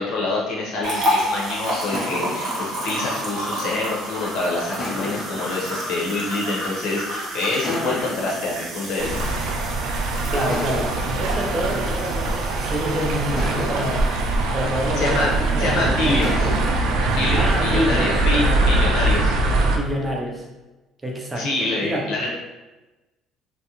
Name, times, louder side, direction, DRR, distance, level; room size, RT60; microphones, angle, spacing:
voice 1, 0.0-2.5 2.8-9.3 14.9-15.3 15.6-16.6 17.1-19.4 21.4-22.3, left 2 dB, 70° left, -3 dB, 0.8 m, -26 dB
sound 1, 0.7-1.3 1.9-4.2 4.8-7.0 7.6-9.9 10.5-12.8 13.4-15.6 16.2-18.5, left 2 dB, 40° left, 0.5 m, -36 dB
sound 2, 0.8-16.1 16.4-16.6 17.1-17.2, equal, 65° right, 0.8 m, -30 dB
sound 3, 9.0-19.8, right 2 dB, 85° right, 0.4 m, -22 dB
voice 2, 10.3-14.1 14.5-15.3 15.5-16.2 17.3-19.1 19.7-20.5 21.0-22.0, equal, 15° right, -1 dB, 0.5 m, -27 dB
2.5 x 2.1 x 2.8 m, 1.1 s
cardioid pair, 145°, 0 cm